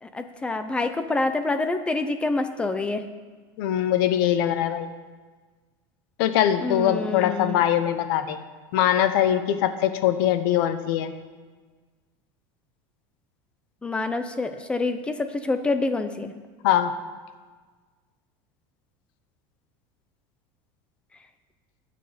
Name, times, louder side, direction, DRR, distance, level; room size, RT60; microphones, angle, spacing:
voice 1, 0.0-3.0 6.6-7.6 13.8-16.3, left 3 dB, 10° left, 9 dB, 0.6 m, -27 dB
voice 2, 3.6-4.9 6.2-8.4 8.7-11.1 16.6-16.9, left 11 dB, 65° left, 10 dB, 1.0 m, -22 dB
19.5 x 6.8 x 5.1 m, 1.4 s
cardioid pair, 170°, 12 cm